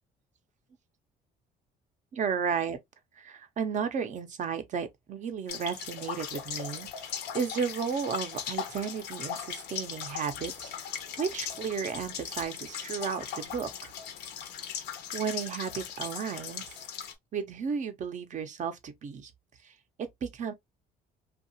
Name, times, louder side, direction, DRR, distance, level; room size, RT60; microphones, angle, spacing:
voice 1, 2.1-2.8 3.2-6.9 7.3-10.7 11.2-13.9 15.1-16.8 17.3-19.3 19.6-19.7 20.0-20.5, right 6 dB, 45° right, 0.6 m, -33 dB
sound 1, 5.5-17.1, left 8 dB, 85° left, 0.6 m, -39 dB
2.7 x 2.4 x 2.7 m
cardioid pair, 110°, 17 cm